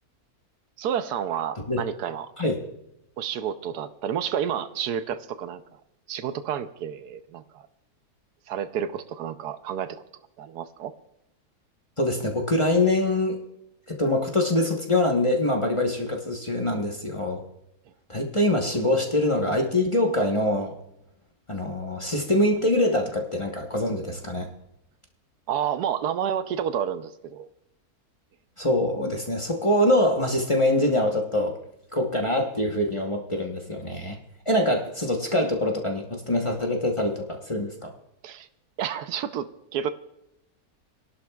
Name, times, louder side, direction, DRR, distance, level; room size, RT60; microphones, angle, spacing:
voice 1, 0.8-2.3 3.2-5.6 6.1-7.7 8.5-10.0 10.4-10.9 25.5-27.5 38.2-38.5 38.8-39.9, right 9 dB, 85° right, 11 dB, 1.2 m, -30 dB
voice 2, 12.0-13.4 13.9-17.4 18.1-20.8 21.5-24.5 28.6-31.6 31.9-34.2 34.5-37.9, left 1 dB, 25° left, 1 dB, 1.0 m, -24 dB
27.5 x 11.5 x 2.3 m, 0.82 s
omnidirectional pair, 1.7 m